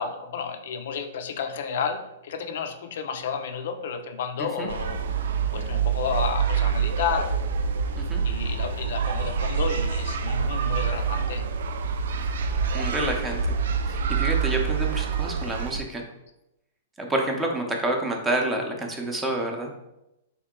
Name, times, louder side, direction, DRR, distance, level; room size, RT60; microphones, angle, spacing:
voice 1, 0.0-5.0 5.5-7.3 8.2-11.5, left 6 dB, 65° left, 7 dB, 0.4 m, -31 dB
voice 2, 4.4-4.7 8.0-8.2 12.7-13.5 13.9-16.0 17.0-19.7, right 1 dB, 10° right, 2 dB, 0.6 m, -28 dB
sound 1, 4.7-15.8, right 6 dB, 75° right, 0.3 m, -26 dB
3.6 x 2.8 x 3.6 m, 0.90 s
hypercardioid pair, 145°, 0 cm